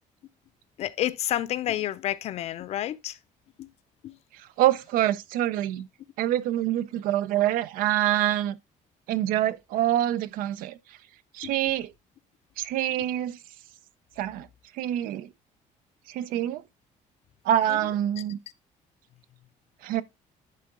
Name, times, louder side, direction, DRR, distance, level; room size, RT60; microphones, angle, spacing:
voice 1, 0.8-3.2 3.6-3.7 4.0-4.2 11.4-11.5 17.7-17.8, left 13 dB, 50° left, 0.4 m, -30 dB
voice 2, 4.6-5.9 6.2-8.6 9.1-10.8 11.3-11.9 12.6-13.4 14.2-14.5 14.8-15.3 16.1-16.6 17.5-18.4 19.8-20.0, right 12 dB, 90° right, 0.5 m, -25 dB
10.5 x 3.8 x 3.7 m
cardioid pair, 175°, 14 cm